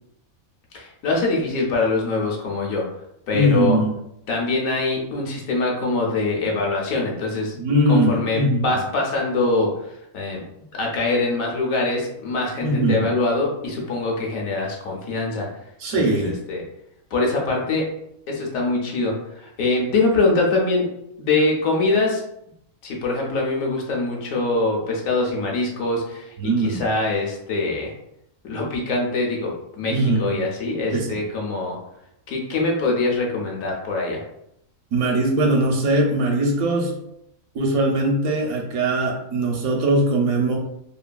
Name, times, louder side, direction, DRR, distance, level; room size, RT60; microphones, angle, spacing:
voice 1, 0.7-2.8 3.3-3.8 4.3-7.5 7.9-9.7 10.1-15.5 15.9-16.6 17.1-17.9 18.3-20.9 21.2-22.2 22.8-27.9 28.4-31.8 32.3-34.2, left 3 dB, 70° left, -1 dB, 1.1 m, -23 dB
voice 2, 3.3-3.9 7.5-8.6 12.6-13.0 15.8-16.3 26.4-26.8 29.9-30.4 30.9-31.2 34.9-36.9 37.5-40.6, right 1 dB, 80° right, 1 dB, 1.1 m, -20 dB
3.0 x 2.5 x 2.2 m, 0.78 s
omnidirectional pair, 1.5 m